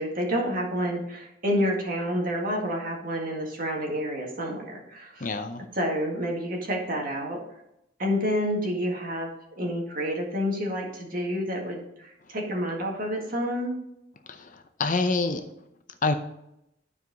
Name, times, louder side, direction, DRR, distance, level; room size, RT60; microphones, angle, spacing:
voice 1, 0.0-5.3 5.7-7.4 8.0-13.8, equal, 50° right, 0 dB, 1.8 m, -29 dB
voice 2, 5.2-5.6 14.3-15.4 16.0-16.1, left 3 dB, 45° left, 7 dB, 0.6 m, -27 dB
12.0 x 4.6 x 4.0 m, 0.82 s
head